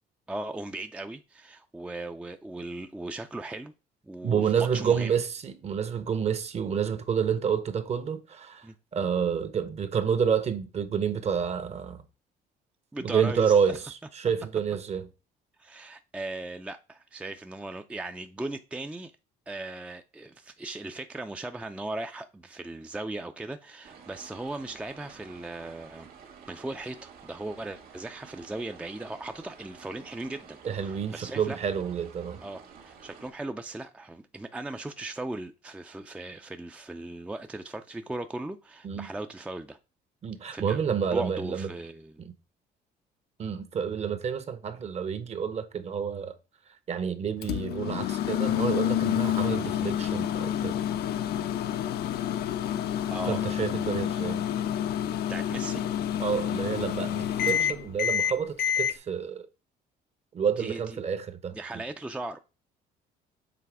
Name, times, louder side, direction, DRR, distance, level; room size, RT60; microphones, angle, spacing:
voice 1, 0.3-3.7 4.0-5.1 8.6-8.7 12.9-13.8 15.6-19.1 19.5-26.1 26.5-31.6 32.4-39.8 40.5-40.8 41.1-42.2 53.1-53.5 55.3-55.9 60.6-61.0 61.5-62.4, right 2 dB, 5° right, 0.4 m, -38 dB
voice 2, 4.2-8.7 8.9-12.0 13.0-15.1 30.6-32.4 38.8-39.1 40.2-41.7 42.2-42.3 43.4-46.4 46.9-50.8 53.3-54.5 56.2-59.5 60.3-61.6, right 7 dB, 40° right, 0.8 m, -29 dB
sound 1, 23.8-33.3, right 6 dB, 65° right, 1.6 m, -51 dB
Microwave oven, 47.4-58.9, left 10 dB, 70° left, 0.5 m, -28 dB
7.0 x 3.3 x 4.7 m
cardioid pair, 110°, 17 cm